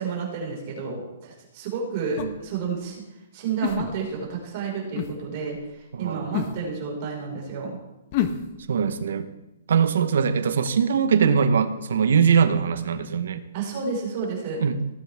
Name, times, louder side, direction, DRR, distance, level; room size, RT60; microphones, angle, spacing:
voice 1, 0.0-3.0 3.3-7.8 11.2-11.3 13.5-14.6, right 5 dB, 35° right, -3 dB, 4.7 m, -30 dB
sound 1, 2.2-2.4 3.6-4.3 4.9-5.1 6.3-6.6 8.1-8.4, left 10 dB, 35° left, 0.9 m, -27 dB
voice 2, 5.9-6.3 8.7-9.3 9.7-13.4 14.6-14.8, right 6 dB, 70° right, 11 dB, 0.9 m, -22 dB
17.5 x 8.5 x 3.5 m, 0.97 s
hypercardioid pair, 160°, 0 cm